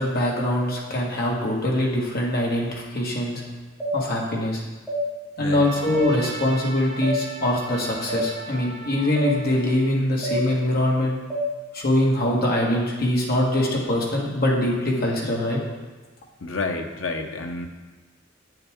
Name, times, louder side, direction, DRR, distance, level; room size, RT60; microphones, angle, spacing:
voice 1, 0.0-3.4 3.9-4.6 5.4-11.2 11.7-15.6, left 1 dB, 50° left, -2 dB, 1.7 m, -23 dB
sound 1, 3.8-4.0 4.9-5.0 5.9-6.1 7.0-7.2 8.1-8.2 9.2-9.3 10.2-10.4 11.3-11.5, right 1 dB, ahead, 1.7 m, -26 dB
voice 2, 5.4-5.7 16.4-17.7, left 3 dB, 75° left, 4 dB, 0.9 m, -29 dB
Trumpet, 5.5-9.9, right 2 dB, 85° right, 1.9 m, -39 dB
8.5 x 8.0 x 3.7 m, 1.2 s
head